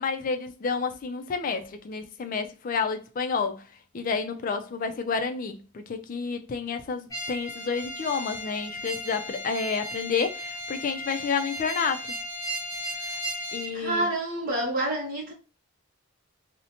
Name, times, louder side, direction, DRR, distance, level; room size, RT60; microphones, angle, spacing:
voice 1, 0.0-3.6 3.9-12.2 13.5-14.1, left 5 dB, 40° left, 0.3 m, -30 dB
sound 1, 7.1-13.7, equal, 15° left, 0.7 m, -35 dB
voice 2, 13.7-15.3, right 1 dB, 40° right, 0.7 m, -28 dB
2.6 x 2.1 x 2.8 m
head